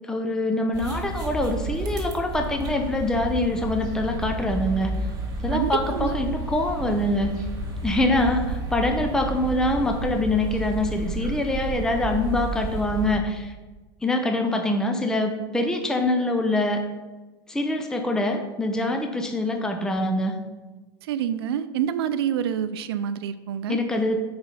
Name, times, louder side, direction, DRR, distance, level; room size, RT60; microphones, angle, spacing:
voice 1, 0.1-5.0 5.4-7.4 7.8-13.5 14.0-16.9 17.5-20.4 23.7-24.2, left 1 dB, 5° left, 4 dB, 0.6 m, -24 dB
sound 1, 0.7-13.2, right 2 dB, 30° right, 1.6 m, -31 dB
voice 2, 5.5-6.1 21.1-23.8, right 9 dB, 90° right, 11 dB, 0.4 m, -27 dB
5.8 x 4.8 x 5.6 m, 1.2 s
supercardioid pair, 125°, 13 cm